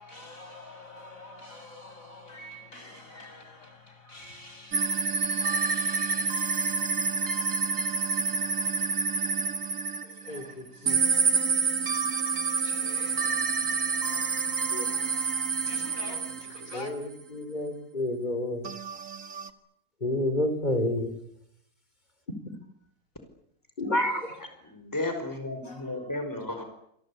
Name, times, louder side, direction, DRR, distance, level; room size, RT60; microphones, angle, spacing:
voice 1, 0.0-3.4 4.1-4.7 5.1-6.2 12.6-13.1 15.7-16.2 16.7-16.9 24.0-24.3 25.7-25.8, left 2 dB, 60° left, 6.5 m, -45 dB
sound 1, 4.7-10.5 10.9-16.9 18.6-19.5, right 5 dB, 55° right, 2.3 m, -28 dB
voice 2, 10.3-11.0 14.7-14.9 16.7-18.7 20.0-21.1 23.8-24.3, left 1 dB, 30° left, 4.2 m, -29 dB
voice 3, 24.7-26.6, left 2 dB, 10° left, 5.2 m, -33 dB
28.5 x 23.5 x 8.5 m
omnidirectional pair, 1.6 m